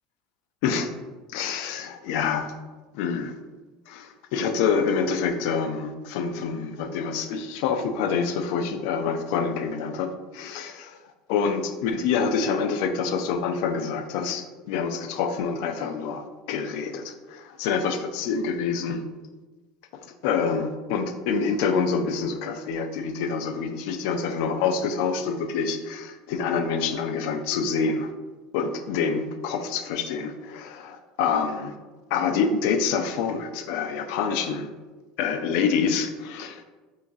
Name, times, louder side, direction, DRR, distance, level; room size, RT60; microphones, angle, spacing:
voice 1, 1.3-2.5 2.9-3.3 3.9-11.0 11.3-19.0 20.2-28.1 28.5-31.7 32.1-34.7 35.2-36.6, left 5 dB, 70° left, 7 dB, 0.3 m, -26 dB
3.7 x 2.4 x 2.4 m, 1.2 s
supercardioid pair, 95°, 2 cm